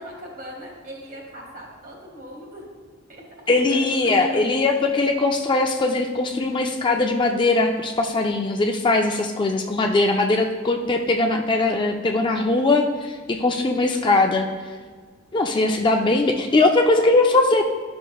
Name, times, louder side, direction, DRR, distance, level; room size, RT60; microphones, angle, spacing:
voice 1, 0.0-2.7 3.1-4.4, equal, 45° right, -1 dB, 1.8 m, -40 dB
voice 2, 3.5-14.5 15.3-17.7, left 2 dB, 25° left, 3 dB, 0.3 m, -20 dB
11.5 x 6.0 x 2.3 m, 1.5 s
head